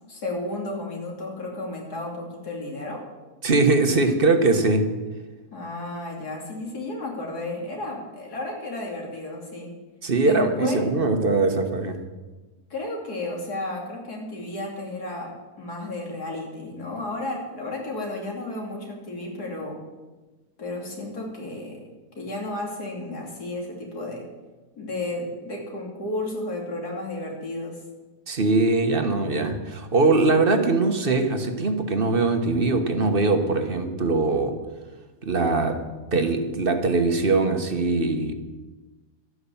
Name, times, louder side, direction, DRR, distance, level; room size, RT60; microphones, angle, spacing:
voice 1, 0.1-3.0 5.5-9.7 10.2-10.9 12.7-19.8 20.6-21.9 22.2-24.3 24.8-27.8, left 2 dB, 85° left, -1 dB, 3.3 m, -33 dB
voice 2, 3.4-4.8 10.0-12.0 28.3-34.5 35.2-35.8 36.1-38.3, right 3 dB, 40° right, 5 dB, 1.3 m, -21 dB
12.5 x 9.5 x 7.1 m, 1.2 s
omnidirectional pair, 1.6 m